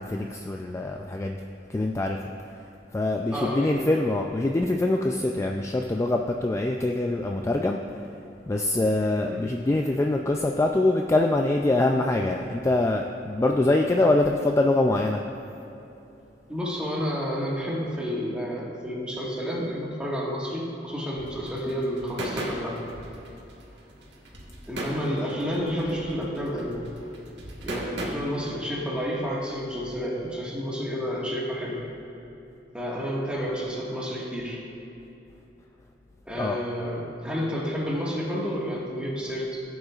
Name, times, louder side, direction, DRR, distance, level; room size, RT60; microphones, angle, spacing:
voice 1, 0.0-1.4 1.7-2.2 2.9-7.8 8.5-15.2 36.4-36.6, left 2 dB, 15° left, 2 dB, 0.3 m, -24 dB
voice 2, 3.3-3.9 9.3-9.5 16.5-22.8 24.7-26.9 27.6-31.8 32.7-34.6 36.2-39.6, equal, 5° right, -5 dB, 1.6 m, -30 dB
sound 1, 21.2-28.1, right 1 dB, 80° right, 1.5 m, -37 dB
15.5 x 8.0 x 2.4 m, 2.9 s
head